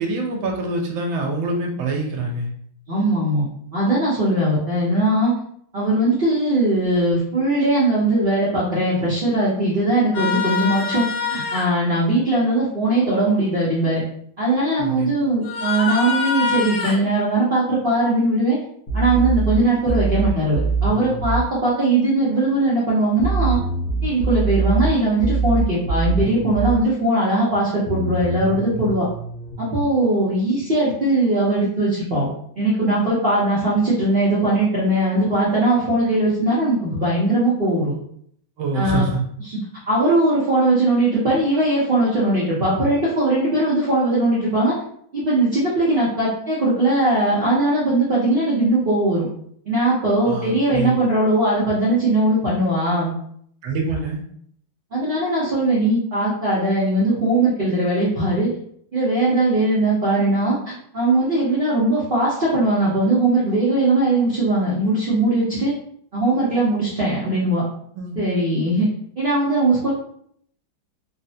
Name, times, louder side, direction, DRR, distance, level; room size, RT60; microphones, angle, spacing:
voice 1, 0.0-2.5 14.8-15.1 38.6-39.2 50.3-51.0 53.6-54.2 67.9-68.2, right 3 dB, 85° right, 1 dB, 1.4 m, -25 dB
voice 2, 2.9-3.5 3.7-5.3 5.7-14.0 14.4-18.6 18.9-23.6 24.0-29.1 29.6-32.3 32.5-38.0 38.7-39.1 39.5-39.6 39.9-44.8 45.1-49.2 49.7-53.2 54.9-58.5 58.9-65.7 66.1-67.6 68.2-68.9 69.2-69.9, right 1 dB, 60° right, -9 dB, 0.5 m, -20 dB
sound 1, 10.1-11.7 15.4-17.0 19.9-20.0, left 6 dB, 65° left, 1.2 m, -24 dB
sound 2, 18.9-21.5 23.2-26.8 27.9-29.5, right 4 dB, 85° left, 1.4 m, -23 dB
3.7 x 2.1 x 2.7 m, 0.66 s
omnidirectional pair, 2.1 m